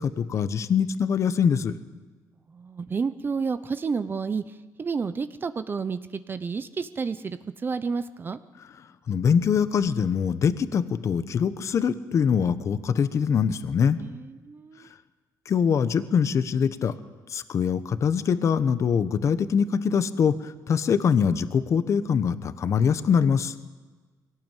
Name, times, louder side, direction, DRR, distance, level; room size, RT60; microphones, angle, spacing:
voice 1, 0.0-1.7 9.1-14.0 15.5-16.9 17.3-23.6, left 7 dB, 50° left, 12 dB, 1.1 m, -23 dB
voice 2, 2.5-4.4 4.8-8.4 14.0-14.9, right 5 dB, 30° right, 12 dB, 0.9 m, -30 dB
22.0 x 18.0 x 9.2 m, 1.3 s
cardioid pair, 120°, 7 cm